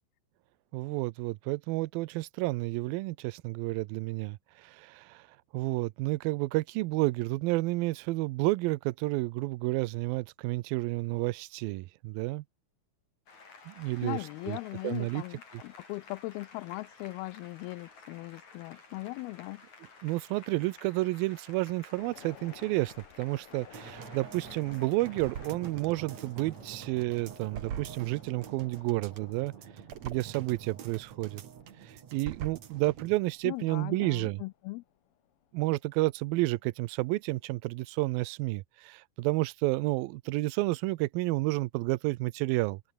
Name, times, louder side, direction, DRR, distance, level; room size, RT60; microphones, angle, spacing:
voice 1, 0.7-5.3 5.5-12.4 13.7-14.2 14.5-14.6 14.8-15.2 20.0-29.5 30.0-31.4 31.8-34.4 35.5-42.8, right 20 dB, 80° right, 2.5 m, -31 dB
Applause, 13.3-25.6, left 4 dB, 50° left, 6.7 m, -54 dB
voice 2, 14.0-19.6 33.4-34.8, left 22 dB, 90° left, 2.5 m, -39 dB
sound 1, 22.0-36.5 36.9-37.0, left 10 dB, 70° left, 1.4 m, -56 dB
sound 2, 23.7-33.2 33.5-33.6, right 9 dB, 55° right, 2.7 m, -44 dB
open air
omnidirectional pair, 4.3 m